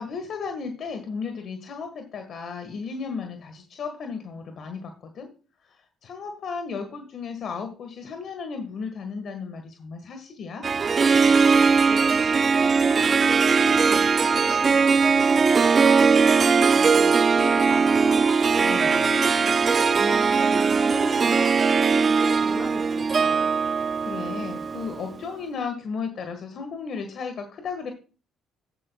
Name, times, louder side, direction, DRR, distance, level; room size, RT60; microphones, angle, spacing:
voice 1, 0.0-5.3 6.0-10.6 18.6-19.0 24.0-27.9, left 5 dB, 55° left, 6 dB, 1.5 m, -34 dB
Harp, 10.6-25.1, right 5 dB, 40° right, 0.4 m, -20 dB
voice 2, 11.9-23.5, left 2 dB, 30° left, 4 dB, 3.6 m, -38 dB
13.0 x 8.5 x 2.3 m, 0.35 s
supercardioid pair, 80°, 0 cm